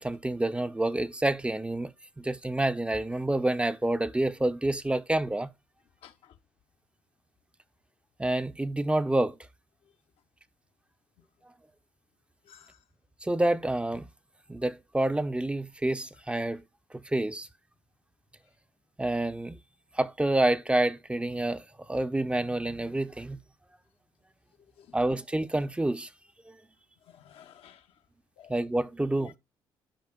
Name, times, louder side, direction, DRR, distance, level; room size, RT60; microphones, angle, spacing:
voice 1, 0.0-1.9 2.2-5.5 8.2-9.4 13.2-14.1 14.5-16.6 17.0-17.5 19.0-19.6 19.9-23.4 24.9-26.1 26.5-26.6 28.5-29.3, right 1 dB, 10° right, 0.5 m, -28 dB
voice 2, 6.0-6.4 12.5-12.8 24.8-25.0 27.1-27.9 28.4-28.5 29.2-29.4, left 10 dB, 70° left, 0.6 m, -53 dB
12.5 x 4.8 x 2.2 m
supercardioid pair, 65°, 10 cm